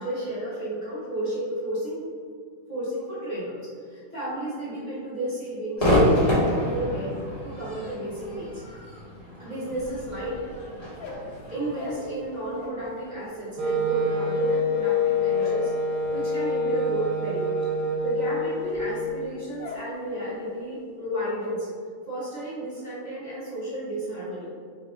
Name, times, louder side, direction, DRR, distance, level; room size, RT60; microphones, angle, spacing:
voice 1, 0.0-2.0 2.7-3.6 3.8-7.1 7.4-8.6 9.4-10.4 11.5-15.7 16.1-17.6 18.0-21.7 22.1-24.5, right 1 dB, 40° left, -11 dB, 0.6 m, -32 dB
Crowd / Fireworks, 5.8-13.1, left 1 dB, 25° left, 1.0 m, -28 dB
sound 1, 10.8-12.9 13.2-20.0 20.3-20.8 21.0-21.6, left 3 dB, 70° left, 0.8 m, -42 dB
Wind instrument woodwind instrument, 13.6-19.2, left 1 dB, 75° right, 1.4 m, -26 dB
4.1 x 2.5 x 3.6 m, 2.1 s
omnidirectional pair, 2.1 m